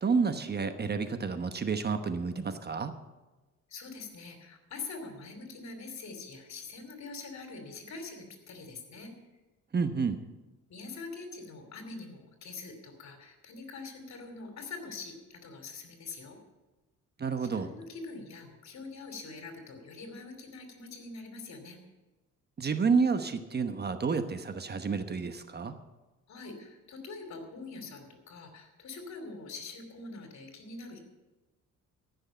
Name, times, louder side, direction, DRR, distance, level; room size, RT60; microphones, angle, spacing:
voice 1, 0.0-2.9 9.7-10.2 17.2-17.7 22.6-25.8, right 5 dB, 35° right, 9 dB, 1.0 m, -30 dB
voice 2, 3.7-9.1 10.7-16.4 17.4-21.8 26.3-31.0, left 3 dB, 65° left, 5 dB, 3.0 m, -44 dB
14.5 x 6.5 x 8.4 m, 1.1 s
cardioid pair, 90°, 30 cm